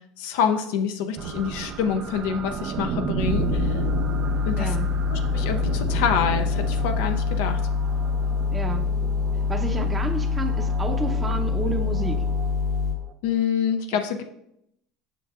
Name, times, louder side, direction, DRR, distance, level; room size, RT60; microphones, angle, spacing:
voice 1, 0.2-3.8 4.5-4.8 5.1-7.6 13.2-14.2, left 7 dB, 75° left, 6 dB, 0.5 m, -26 dB
sound 1, 1.2-13.1, right 6 dB, 50° right, 0.5 m, -34 dB
sound 2, 3.2-12.9, left 5 dB, 80° right, 1.2 m, -25 dB
voice 2, 4.6-4.9 8.5-8.8 9.5-12.2 13.9-14.0, right 3 dB, 20° right, 4 dB, 0.8 m, -30 dB
6.7 x 6.1 x 2.4 m, 0.78 s
hypercardioid pair, 85°, 0 cm